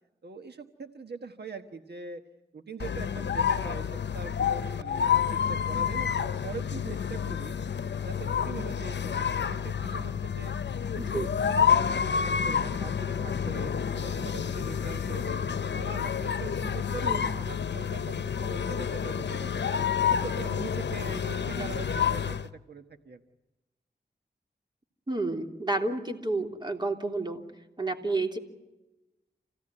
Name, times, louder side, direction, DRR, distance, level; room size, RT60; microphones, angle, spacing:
voice 1, 0.2-2.2 2.5-7.5 8.0-10.5 10.9-15.4 15.7-19.6 20.0-23.2, right 4 dB, 70° right, 6 dB, 1.3 m, -42 dB
sound 1, 2.8-22.5, left 7 dB, 85° left, 0.8 m, -29 dB
voice 2, 11.0-11.3 17.0-17.3 21.5-21.6 25.1-27.4 27.8-28.4, right 2 dB, 25° right, 3 dB, 3.3 m, -30 dB
27.5 x 17.0 x 9.8 m, 1.0 s
wide cardioid pair, 55°, 18 cm